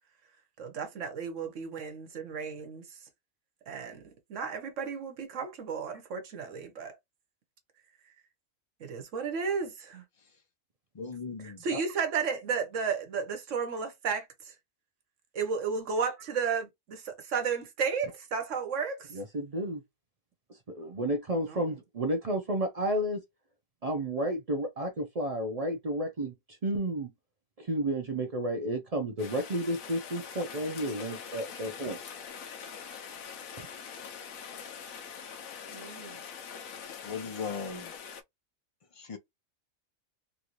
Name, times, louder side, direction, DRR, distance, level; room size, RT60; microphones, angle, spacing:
voice 1, 0.6-2.8 3.7-4.0 4.3-7.0 8.8-10.0 11.4-14.5 15.3-19.1 21.5-21.7 35.7-36.2, right 5 dB, 65° right, 1.1 m, -33 dB
voice 2, 10.9-11.6 37.0-37.9 38.9-39.2, left 5 dB, 60° left, 0.3 m, -37 dB
voice 3, 19.1-19.8 20.5-23.2 23.8-27.1 27.6-32.0 33.6-33.7, right 1 dB, 45° right, 0.5 m, -32 dB
Rain, 29.2-38.2, left 7 dB, 80° left, 1.0 m, -43 dB
3.1 x 2.5 x 2.9 m
omnidirectional pair, 1.4 m